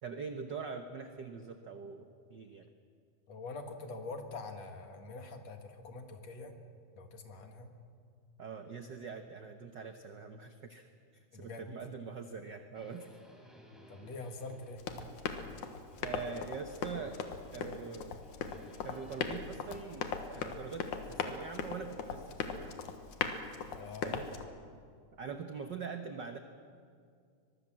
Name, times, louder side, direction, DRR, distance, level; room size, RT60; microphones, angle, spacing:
voice 1, 0.0-2.0 2.3-2.7 8.4-10.9 11.1-13.1 16.0-18.2 18.8-22.8 24.0-24.3 25.1-26.4, right 5 dB, 65° right, 6 dB, 1.1 m, -43 dB
voice 2, 3.3-6.6 6.9-7.7 11.3-11.7 13.9-14.8 23.7-24.2, left 3 dB, 60° left, 5 dB, 3.0 m, -45 dB
sound 1, 12.7-16.4 16.7-17.9 18.2-19.4, equal, ahead, 4.1 m, -58 dB
Run, 14.8-24.4, left 6 dB, 80° left, 2.9 m, -39 dB
23.5 x 23.0 x 7.5 m, 2.2 s
omnidirectional pair, 3.4 m